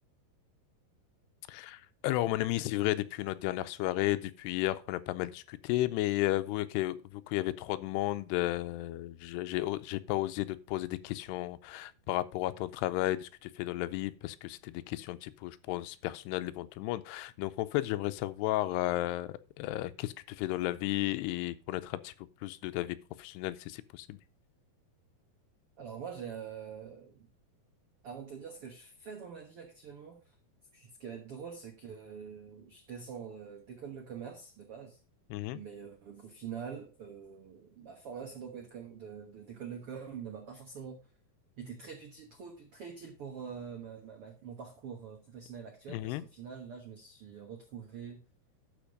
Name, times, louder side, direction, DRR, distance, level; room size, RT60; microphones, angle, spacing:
voice 1, 1.5-22.1 22.4-24.2 35.3-35.6 45.9-46.2, left 16 dB, 85° left, 2.7 m, -33 dB
voice 2, 25.8-27.3 28.0-30.3 30.7-35.0 35.5-41.0 41.6-48.2, right 7 dB, 90° right, 1.2 m, -45 dB
12.0 x 5.2 x 5.2 m
omnidirectional pair, 4.7 m